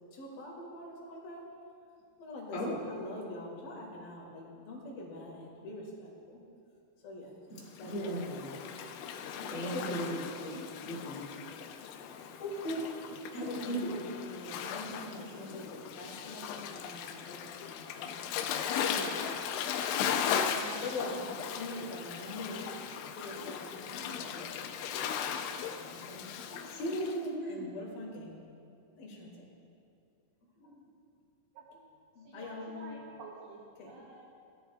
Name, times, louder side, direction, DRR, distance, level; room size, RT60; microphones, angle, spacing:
voice 1, 0.1-1.4 2.2-2.6 2.9-6.4 7.0-7.3 7.7-8.2 9.6-10.0 10.4-10.5 13.4-18.3 18.7-19.2 20.5-22.7 23.2-24.5 25.5-26.7 27.5-28.4 29.0-29.5 32.2-33.0 33.8-33.9, left 2 dB, 60° left, -3 dB, 3.5 m, -43 dB
voice 2, 7.5-8.5 9.4-11.3 11.6-11.7 12.2-13.0 13.3-14.0 26.6-27.6 30.6-30.7, right 1 dB, 40° left, -4 dB, 1.9 m, -37 dB
Waves surf, 7.7-27.2, left 8 dB, 90° left, 3.0 m, -37 dB
voice 3, 32.2-34.3, right 3 dB, 75° right, -3 dB, 2.7 m, -50 dB
17.0 x 11.5 x 2.3 m, 2.4 s
omnidirectional pair, 5.2 m